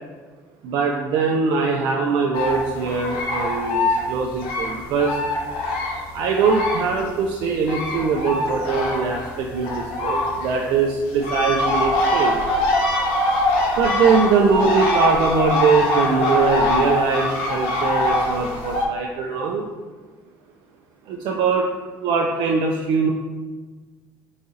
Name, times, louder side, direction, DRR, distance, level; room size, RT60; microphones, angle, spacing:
voice 1, 0.6-5.2 6.1-12.4 13.8-19.7 21.1-21.7 22.0-23.1, right 5 dB, 65° right, 1 dB, 0.4 m, -21 dB
sound 1, 2.3-7.1 7.4-18.9, left 2 dB, 75° left, 0.8 m, -23 dB
4.0 x 2.7 x 3.7 m, 1.4 s
supercardioid pair, 80°, 9 cm